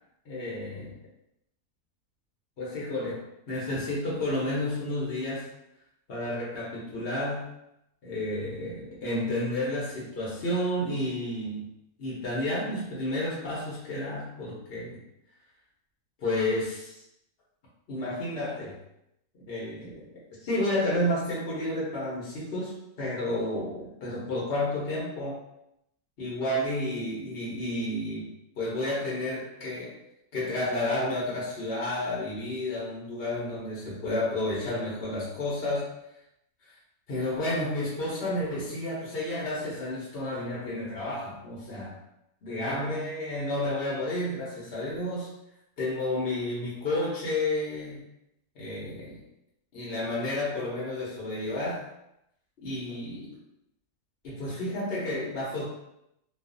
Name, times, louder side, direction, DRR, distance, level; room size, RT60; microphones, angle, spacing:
voice 1, 0.3-1.0 2.6-3.2 3.5-5.5 6.1-7.5 8.0-11.7 12.0-15.0 16.2-16.9 17.9-18.8 19.5-20.1 20.4-25.4 26.2-30.0 30.3-35.9 37.1-41.9 42.4-45.3 45.8-48.1 48.6-49.2 49.7-51.8 52.6-53.4 54.2-55.6, left 1 dB, 50° left, -6 dB, 0.9 m, -31 dB
2.4 x 2.3 x 2.5 m, 0.82 s
omnidirectional pair, 1.4 m